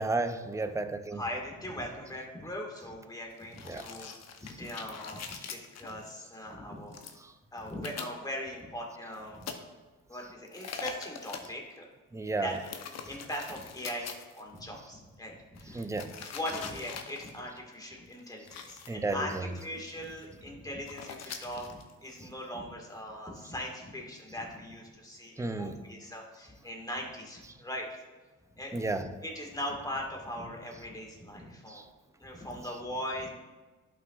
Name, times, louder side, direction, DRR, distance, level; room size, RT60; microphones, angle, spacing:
voice 1, 0.0-1.2 3.7-3.8 12.1-12.5 15.7-16.1 18.9-19.2 25.4-25.7 28.7-29.1 31.7-31.8, right 3 dB, 10° right, 9 dB, 0.5 m, -32 dB
voice 2, 1.1-4.1 4.4-7.0 7.5-9.5 10.1-11.8 12.4-12.6 13.0-16.0 16.3-28.0 28.6-28.7 29.2-31.8 32.2-33.3, equal, 10° left, -1 dB, 1.8 m, -40 dB
sound 1, 3.4-6.1 6.9-7.1 7.6-8.1 9.1-9.5 10.5-11.5 12.5-14.6 15.6-17.4 18.0-18.2 18.5-18.9 19.6-19.7 19.9-20.4 20.9-22.4, left 6 dB, 60° left, 0.8 m, -43 dB
11.0 x 5.8 x 2.4 m, 1.3 s
cardioid pair, 90°, 30 cm